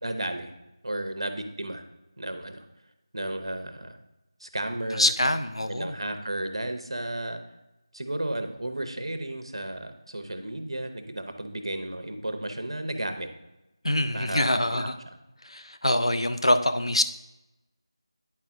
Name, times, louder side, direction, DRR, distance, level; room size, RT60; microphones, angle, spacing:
voice 1, 0.0-0.5 0.8-1.8 2.2-2.7 3.1-4.0 4.4-5.1 5.7-7.4 7.9-13.3 14.1-14.9, right 1 dB, 70° right, 7 dB, 0.9 m, -33 dB
voice 2, 4.9-6.0 13.8-15.0 15.4-17.0, left 1 dB, 85° left, 9 dB, 0.6 m, -24 dB
9.7 x 4.4 x 3.6 m, 0.97 s
figure-of-eight pair, 170°, 3 cm